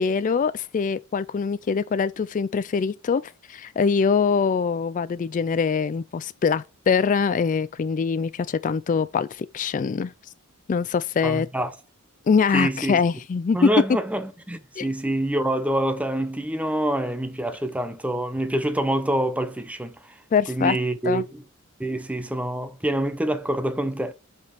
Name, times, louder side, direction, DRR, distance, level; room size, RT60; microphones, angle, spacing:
voice 1, 0.0-10.1 10.7-11.5 12.3-13.7 14.8-14.9 20.3-20.8 21.1-21.2, left 5 dB, 35° left, 0.3 m, -23 dB
voice 2, 11.2-11.7 12.5-13.0 13.5-20.2 20.5-21.4 21.8-24.1, right 1 dB, 5° right, 0.7 m, -26 dB
5.5 x 5.2 x 5.7 m
head